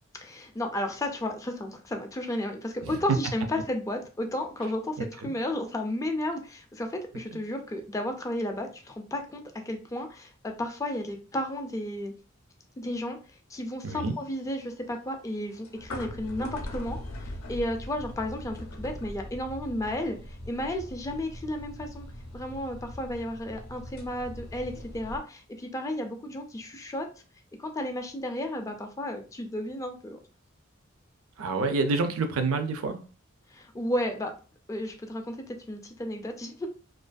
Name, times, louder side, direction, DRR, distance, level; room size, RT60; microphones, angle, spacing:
voice 1, 0.2-12.1 12.8-13.2 13.5-22.1 22.3-27.1 27.6-30.2 33.5-34.3 34.7-36.7, left 1 dB, 15° left, 0.3 m, -33 dB
voice 2, 5.0-5.3 13.8-14.1 31.4-33.0, right 3 dB, 80° right, 0.4 m, -28 dB
sound 1, 13.9-25.2, left 1 dB, 90° left, 0.5 m, -41 dB
2.4 x 2.4 x 2.2 m
head